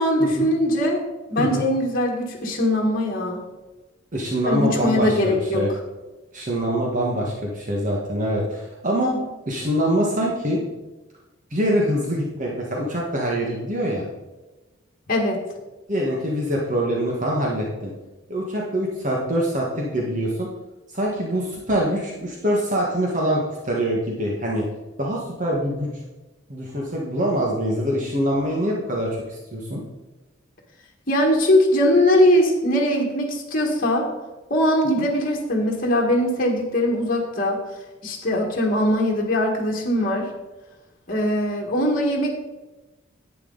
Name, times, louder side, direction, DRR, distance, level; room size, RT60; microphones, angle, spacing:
voice 1, 0.0-3.4 4.5-5.6 15.1-15.4 31.1-34.1 34.5-37.6 38.0-40.3 41.1-42.3, left 1 dB, 45° left, -1 dB, 1.7 m, -21 dB
voice 2, 4.1-5.7 6.3-9.1 9.4-10.6 11.5-14.0 15.9-17.9 18.3-20.5 20.9-24.7 25.0-25.9 26.5-29.8 35.0-35.1, equal, 40° right, -2 dB, 1.5 m, -24 dB
10.5 x 8.6 x 4.0 m, 1.1 s
head